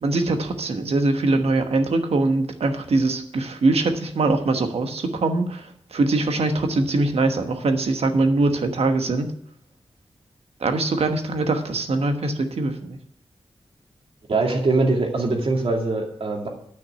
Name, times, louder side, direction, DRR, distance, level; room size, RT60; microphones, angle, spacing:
voice 1, 0.0-9.3 10.6-13.0, right 2 dB, 85° right, 6 dB, 1.2 m, -22 dB
voice 2, 14.3-16.5, right 3 dB, 70° right, 1 dB, 2.4 m, -22 dB
9.4 x 6.0 x 8.5 m, 0.66 s
wide cardioid pair, 90°, 10 cm